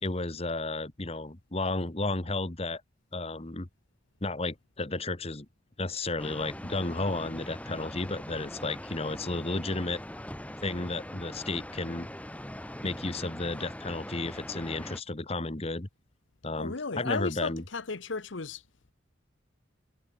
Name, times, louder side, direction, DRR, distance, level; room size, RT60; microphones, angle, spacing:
voice 1, 0.0-2.8 3.1-3.7 4.2-5.5 5.8-10.0 10.6-12.1 12.8-15.9 16.4-17.6, left 2 dB, 35° left, 1.6 m, -33 dB
sound 1, 6.2-15.0, left 1 dB, 10° left, 4.9 m, -42 dB
voice 2, 16.6-18.6, left 4 dB, 90° left, 1.1 m, -34 dB
head